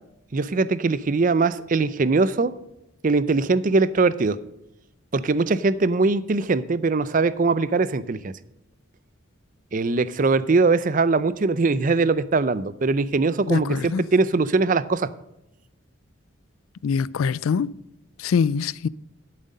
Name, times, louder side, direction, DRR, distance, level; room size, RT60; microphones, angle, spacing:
voice 1, 0.3-2.5 3.0-4.4 5.1-8.3 9.7-15.1, right 3 dB, 40° right, 0.5 m, -21 dB
voice 2, 13.5-14.0 16.8-17.7 18.2-18.9, left 6 dB, 90° left, 0.4 m, -23 dB
12.0 x 7.5 x 5.4 m
head